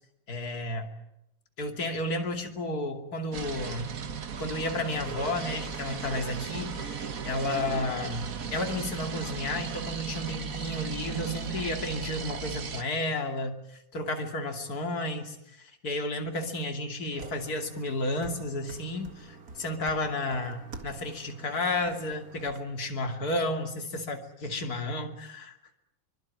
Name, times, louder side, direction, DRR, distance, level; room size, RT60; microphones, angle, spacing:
voice 1, 0.3-0.9 1.6-3.9 4.4-15.4 15.8-25.6, left 2 dB, 30° left, 5 dB, 2.9 m, -32 dB
sound 1, 3.3-12.8, right 6 dB, 60° right, 0.9 m, -36 dB
sound 2, 17.1-22.6, right 3 dB, 30° right, 2.2 m, -47 dB
24.5 x 23.0 x 9.6 m, 0.83 s
omnidirectional pair, 3.5 m